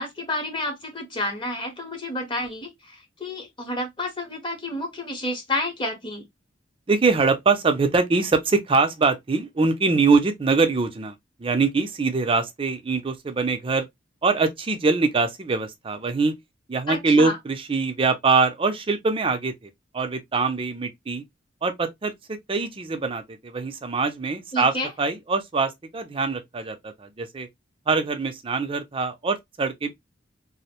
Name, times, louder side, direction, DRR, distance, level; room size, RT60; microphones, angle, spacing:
voice 1, 0.0-6.2 16.9-17.4 24.5-24.9, left 1 dB, 25° left, 0.8 m, -30 dB
voice 2, 6.9-11.1 11.4-13.9 14.2-16.3 16.7-21.2 21.6-27.5 27.9-29.9, right 4 dB, 30° right, 0.4 m, -23 dB
2.5 x 2.0 x 2.8 m
head